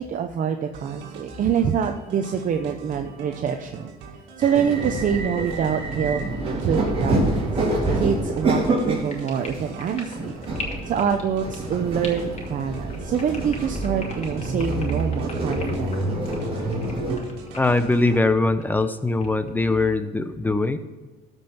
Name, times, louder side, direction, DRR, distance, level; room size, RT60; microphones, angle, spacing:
voice 1, 0.0-3.9 4.4-6.3 6.6-7.5 7.9-10.4 10.9-16.2, right 7 dB, 50° right, 6 dB, 0.8 m, -25 dB
sound 1, 0.7-18.2, right 4 dB, 90° right, 1.8 m, -43 dB
sound 2, 4.4-17.2, right 2 dB, 35° right, 3.6 m, -27 dB
sound 3, 9.0-18.8 19.2-20.0, left 4 dB, 40° left, 2.6 m, -39 dB
voice 2, 17.5-20.8, left 2 dB, 10° left, 10 dB, 0.8 m, -21 dB
13.5 x 5.4 x 5.9 m, 1.3 s
cardioid pair, 110°, 17 cm